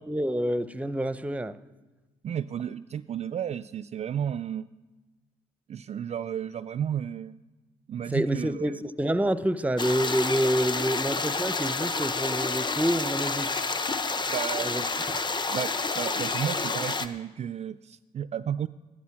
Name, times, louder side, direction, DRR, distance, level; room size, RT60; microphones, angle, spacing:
voice 1, 0.0-1.6 8.1-13.5 14.6-14.8, equal, 10° right, 0.7 m, -27 dB
voice 2, 2.2-4.7 5.7-7.4 7.9-8.8 14.3-15.1 15.5-18.7, right 9 dB, 45° right, 0.4 m, -33 dB
sound 1, 9.8-17.1, left 3 dB, 30° left, 0.9 m, -29 dB
14.0 x 11.0 x 5.9 m
supercardioid pair, 65°, 16 cm